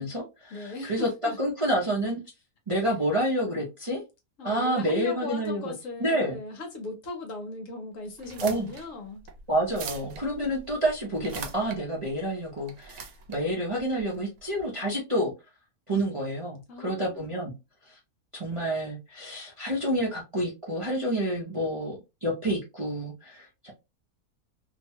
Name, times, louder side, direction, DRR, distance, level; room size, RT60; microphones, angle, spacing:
voice 1, 0.0-1.1 1.4-2.2 2.7-4.0 4.4-5.7 6.0-6.4 8.4-8.7 9.5-15.3 15.9-17.5 17.9-18.0 18.3-23.7, right 1 dB, 35° right, 0.5 m, -29 dB
voice 2, 0.5-1.4 4.4-9.3 16.7-17.3, left 2 dB, 60° left, 1.1 m, -38 dB
sound 1, 8.1-14.6, right 5 dB, 75° right, 1.1 m, -43 dB
2.8 x 2.2 x 2.8 m
omnidirectional pair, 1.6 m